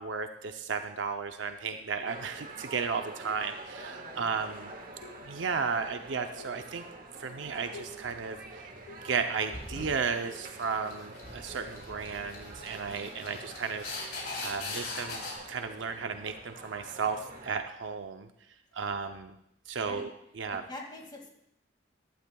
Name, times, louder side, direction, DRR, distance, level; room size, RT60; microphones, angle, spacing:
voice 1, 0.0-4.7 5.2-6.8 7.2-8.4 9.0-15.2 15.5-18.3 18.7-19.4 19.7-20.1 20.4-20.6, right 5 dB, 80° right, 6 dB, 0.6 m, -34 dB
sound 1, 2.0-2.6 3.8-4.2 5.0-5.6 6.4-6.9 7.7-8.2 8.9-10.5 11.6-12.0 13.4-13.7, left 3 dB, 75° left, 1.4 m, -52 dB
sound 2, 2.0-17.6, right 2 dB, 50° right, 1.4 m, -47 dB
voice 2, 3.9-4.4 12.9-13.1 19.8-20.1 20.5-21.3, left 1 dB, 25° left, 1 dB, 2.1 m, -45 dB
sound 3, 9.5-15.3, left 2 dB, 55° left, 3.3 m, -41 dB
15.0 x 12.0 x 2.3 m, 0.77 s
head